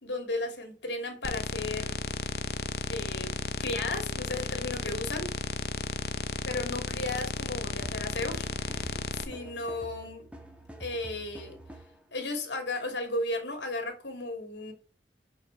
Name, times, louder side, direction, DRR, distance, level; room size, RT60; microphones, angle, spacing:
voice 1, 0.0-2.0 2.9-5.3 6.5-10.3 10.8-11.6 12.1-14.7, left 2 dB, 85° left, 3.2 m, -35 dB
sound 1, 1.2-9.2, left 3 dB, 60° left, 0.9 m, -34 dB
sound 2, 7.8-12.0, right 1 dB, 5° right, 1.5 m, -47 dB
6.5 x 6.5 x 6.4 m
head